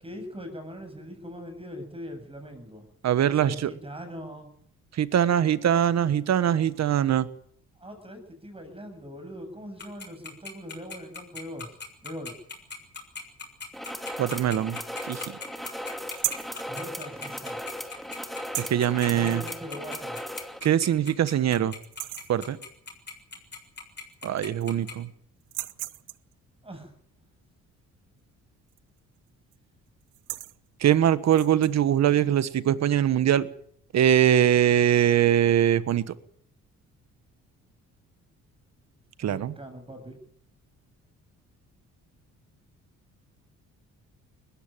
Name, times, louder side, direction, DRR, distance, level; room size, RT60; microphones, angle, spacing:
voice 1, 0.0-2.9 3.3-4.7 7.8-11.8 12.0-12.4 16.7-17.6 19.0-20.2 26.6-26.9 39.2-40.2, equal, 20° right, 7 dB, 7.9 m, -41 dB
voice 2, 3.0-3.5 5.0-7.3 14.2-14.8 15.1-15.2 18.6-19.4 20.6-21.7 22.3-22.6 24.2-25.1 30.8-33.5 33.9-36.0 39.2-39.5, right 10 dB, 60° right, 15 dB, 1.4 m, -22 dB
Tick-tock, 9.8-24.9, left 5 dB, 35° left, 7.1 m, -38 dB
sound 1, 13.7-20.6, equal, ahead, 2.5 m, -37 dB
sound 2, 16.1-16.6 18.4-18.9 20.3-20.4 20.8-20.9 21.3-21.6 21.8-22.4 23.8-23.9 24.1-24.8 25.4-26.3 28.7-29.0 29.3-29.6 30.0-30.6 31.3-31.7, right 16 dB, 85° right, 0.8 m, -35 dB
20.5 x 14.5 x 9.2 m, 0.65 s
cardioid pair, 90°, 30 cm